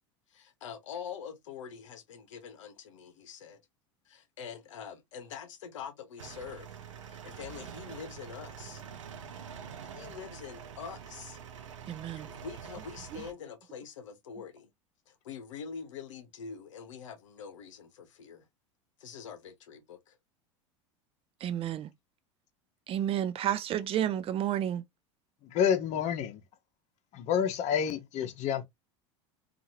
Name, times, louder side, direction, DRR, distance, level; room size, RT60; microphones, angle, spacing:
voice 1, 0.3-3.6 4.1-6.8 7.0-8.8 9.9-11.4 12.1-14.7 15.1-18.5 19.0-20.2, left 7 dB, 85° left, 0.7 m, -44 dB
sound 1, 6.2-13.3, right 7 dB, 90° right, 0.6 m, -46 dB
voice 2, 11.9-12.3 21.4-21.9 22.9-24.8, right 11 dB, 35° right, 0.5 m, -31 dB
voice 3, 25.4-26.4 27.1-28.6, left 8 dB, 50° left, 0.8 m, -29 dB
2.8 x 2.5 x 2.7 m
hypercardioid pair, 90°, 16 cm